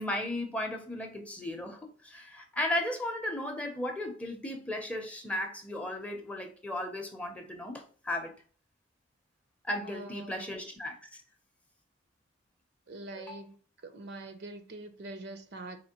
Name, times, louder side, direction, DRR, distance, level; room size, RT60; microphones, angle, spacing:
voice 1, 0.0-8.3 9.6-11.2 13.2-13.4, left 1 dB, 5° left, 0.6 m, -35 dB
voice 2, 9.8-10.6 12.9-13.5 13.8-15.8, right 2 dB, 60° right, 0.6 m, -44 dB
4.3 x 3.0 x 2.9 m
head